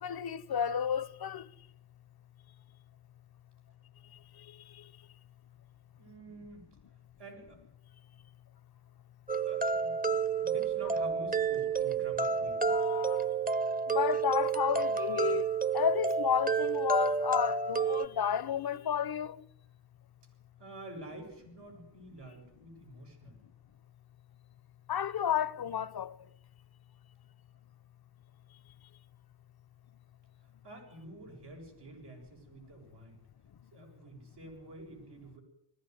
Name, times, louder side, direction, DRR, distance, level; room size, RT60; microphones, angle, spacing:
voice 1, 0.0-1.5 12.7-13.3 13.9-15.5 15.7-19.4 24.9-26.1, left 8 dB, 65° left, 0.9 m, -31 dB
voice 2, 6.0-6.7 7.2-7.6 9.4-10.0 10.4-12.7 20.6-23.4 30.4-33.2 33.7-35.4, right 2 dB, 85° right, 8.0 m, -48 dB
sound 1, 9.3-18.1, right 5 dB, 20° right, 1.0 m, -30 dB
20.5 x 15.5 x 9.7 m
wide cardioid pair, 105°, 40 cm